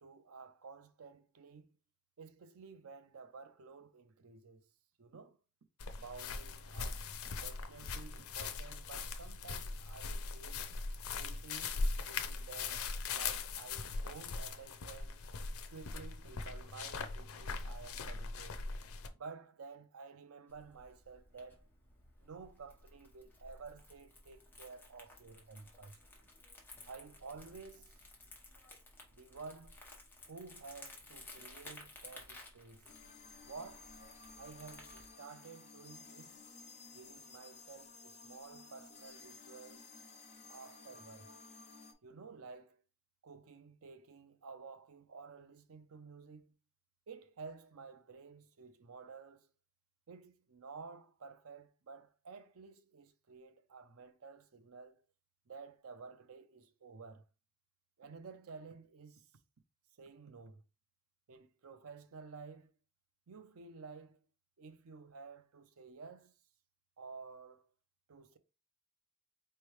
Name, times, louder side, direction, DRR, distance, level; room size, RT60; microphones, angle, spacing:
voice 1, 0.0-1.8 2.2-4.6 5.0-5.4 6.0-10.7 11.1-15.2 15.7-18.6 19.1-21.6 22.2-26.0 26.9-27.9 29.1-29.8 30.3-32.9 33.4-33.9 34.4-36.4 36.9-39.9 40.5-41.3 42.0-42.8 43.2-46.5 47.1-49.5 50.1-55.0 55.5-57.2 58.0-59.3 60.0-60.6 61.3-62.7 63.3-64.2 64.6-66.3 67.0-67.7 68.1-68.4, right 4 dB, 90° right, 0.6 m, -52 dB
sound 1, 5.8-19.1, left 4 dB, 90° left, 0.6 m, -40 dB
Crumpling crinkling, 20.5-35.1, left 2 dB, 10° left, 1.1 m, -56 dB
sound 2, 32.8-41.9, left 4 dB, 35° left, 0.9 m, -55 dB
4.5 x 3.2 x 3.1 m
head